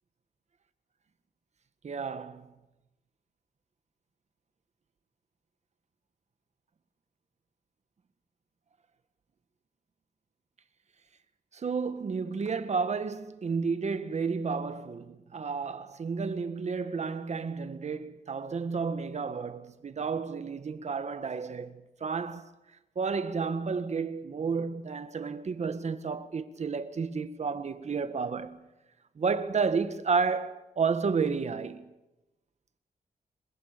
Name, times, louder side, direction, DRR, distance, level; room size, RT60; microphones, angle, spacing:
voice 1, 1.8-2.6 11.5-22.5 23.0-28.7 29.2-31.9, right 5 dB, 45° right, 1.8 m, -31 dB
27.5 x 24.5 x 6.9 m
wide cardioid pair, 170°, 16 cm